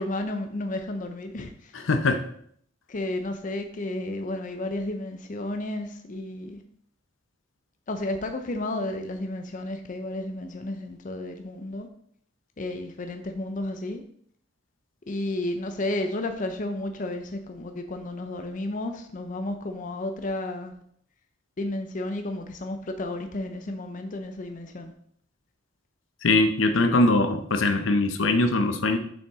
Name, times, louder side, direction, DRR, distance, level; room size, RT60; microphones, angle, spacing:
voice 1, 0.0-1.7 2.9-6.6 7.9-11.9 12.6-14.0 15.1-20.7 21.6-24.9, left 1 dB, 40° left, 0.6 m, -32 dB
voice 2, 1.7-2.2 26.2-29.0, left 2 dB, 75° left, 0.7 m, -22 dB
7.1 x 5.6 x 3.6 m
head